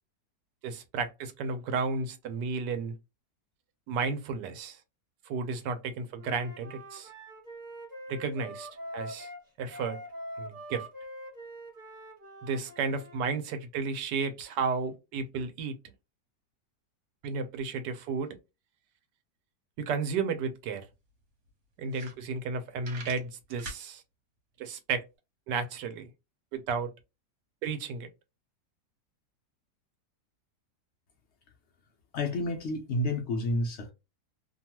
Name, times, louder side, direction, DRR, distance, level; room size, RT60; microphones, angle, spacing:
voice 1, 0.6-3.0 3.9-4.8 5.3-7.1 8.1-8.7 8.9-9.3 9.6-10.0 10.4-10.9 12.4-15.9 17.2-18.4 19.8-20.9 21.8-24.0 24.6-25.0 25.5-26.1 26.5-26.9 27.6-28.1, right 5 dB, 75° right, 1.3 m, -33 dB
Wind instrument woodwind instrument, 6.2-13.2, equal, 25° right, 1.3 m, -44 dB
sound 1, 20.9-21.0 21.5-21.6 21.8-22.5 22.8-23.8, right 2 dB, 50° right, 1.3 m, -43 dB
voice 2, 32.1-33.9, left 1 dB, 85° left, 0.6 m, -30 dB
2.9 x 2.3 x 2.8 m
omnidirectional pair, 1.9 m